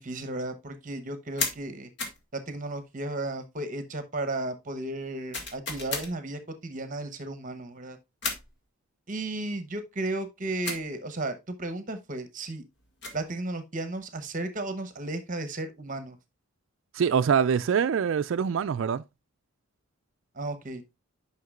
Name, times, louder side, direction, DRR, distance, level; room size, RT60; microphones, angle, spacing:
voice 1, 0.0-1.9 2.3-8.0 9.1-12.6 13.1-16.2 20.4-20.8, right 2 dB, 35° right, 0.9 m, -34 dB
sound 1, 1.4-1.6 2.0-2.2 5.3-6.1 8.2-8.5 10.6-10.9 12.8-13.3, left 3 dB, 50° left, 1.9 m, -33 dB
voice 2, 16.9-19.0, right 7 dB, 60° right, 0.3 m, -24 dB
9.4 x 5.8 x 2.4 m
head